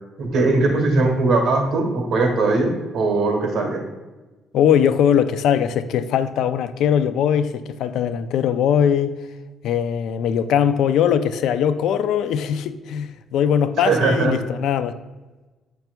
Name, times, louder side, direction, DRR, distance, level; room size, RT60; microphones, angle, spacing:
voice 1, 0.2-3.8 13.8-14.3, right 3 dB, 55° right, 1.5 m, -20 dB
voice 2, 4.5-9.1 9.6-14.9, left 8 dB, 75° left, 0.3 m, -20 dB
7.8 x 5.7 x 2.3 m
cardioid pair, 140°, 0 cm